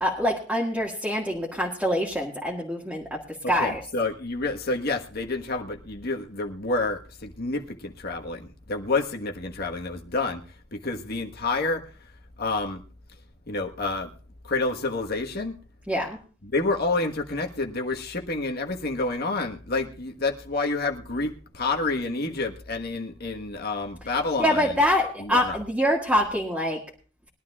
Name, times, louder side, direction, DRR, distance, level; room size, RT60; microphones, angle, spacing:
voice 1, 0.0-3.2 3.5-3.8 15.9-16.2 24.4-26.8, equal, 5° right, -3 dB, 1.9 m, -25 dB
voice 2, 3.4-10.4 10.7-11.8 12.4-12.8 13.5-14.1 14.5-15.6 16.4-24.8 25.2-25.6, left 3 dB, 55° left, 3 dB, 1.4 m, -29 dB
22.0 x 12.0 x 2.4 m, 0.39 s
head